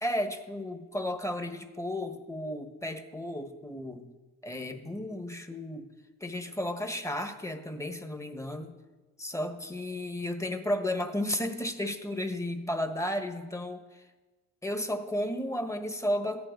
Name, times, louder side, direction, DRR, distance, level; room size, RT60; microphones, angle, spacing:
voice 1, 0.0-4.1 4.4-5.9 6.2-8.7 9.2-14.0 14.6-16.5, left 1 dB, 10° left, 7 dB, 1.2 m, -33 dB
14.0 x 9.5 x 5.2 m, 1.2 s
cardioid pair, 90°, 30 cm